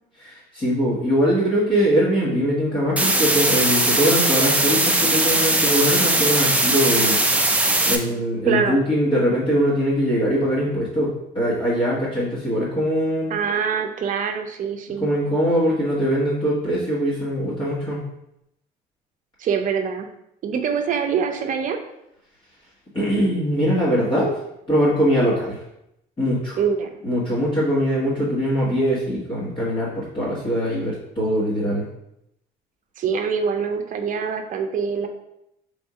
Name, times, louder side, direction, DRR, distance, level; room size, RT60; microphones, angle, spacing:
voice 1, 0.2-7.2 7.8-13.3 15.0-18.0 22.9-24.3 24.7-25.6 26.2-26.6 27.0-31.8, equal, 30° left, -9 dB, 1.5 m, -22 dB
sound 1, 3.0-8.0, right 2 dB, 10° right, 0.5 m, -19 dB
voice 2, 8.5-8.8 13.3-15.1 19.4-20.1 20.4-21.8 26.6-26.9 33.0-35.1, right 6 dB, 50° right, 5 dB, 0.6 m, -24 dB
3.6 x 2.7 x 4.7 m, 0.82 s
cardioid pair, 110°, 17 cm